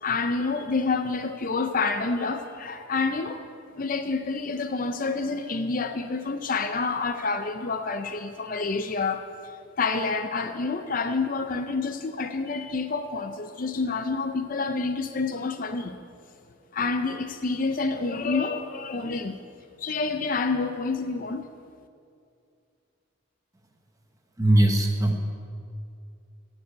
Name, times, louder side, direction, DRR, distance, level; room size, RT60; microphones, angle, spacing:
voice 1, 0.0-3.5 3.7-9.3 9.8-16.0 16.7-19.4 19.8-21.5, left 4 dB, 40° left, 0.5 m, -28 dB
voice 2, 24.4-25.2, right 1 dB, 15° right, 1.0 m, -20 dB
15.0 x 5.4 x 8.9 m
head